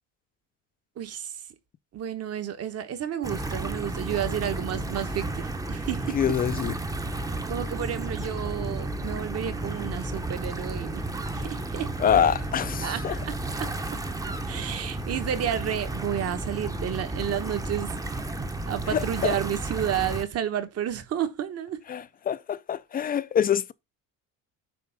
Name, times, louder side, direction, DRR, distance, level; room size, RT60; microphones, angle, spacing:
voice 1, 1.0-1.3 1.9-6.2 7.5-11.1 11.3-12.1 12.8-13.7 14.5-17.9 18.7-21.8, right 9 dB, 45° right, 1.2 m, -31 dB
sound 1, 3.2-20.2, right 2 dB, 10° right, 0.8 m, -32 dB
voice 2, 6.1-6.8 12.0-13.2 18.9-19.4 21.9-23.7, left 8 dB, 25° left, 0.4 m, -25 dB
9.3 x 3.1 x 5.7 m
cardioid pair, 130°, 35 cm